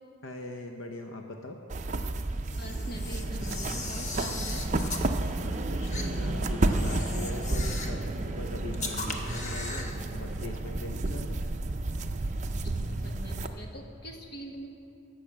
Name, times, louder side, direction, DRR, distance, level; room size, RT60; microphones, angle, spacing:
voice 1, 0.2-1.6 5.3-11.4, left 2 dB, 85° left, 3 dB, 0.9 m, -41 dB
sound 1, 1.7-13.5, right 2 dB, 35° right, 0.5 m, -31 dB
Camera, 2.5-5.1 5.9-6.1 6.7-8.0 8.7-10.0, left 3 dB, 35° left, 1.0 m, -38 dB
voice 2, 2.6-4.7 12.6-14.7, equal, 55° left, 2 dB, 1.4 m, -43 dB
17.0 x 6.5 x 7.4 m, 2.8 s
head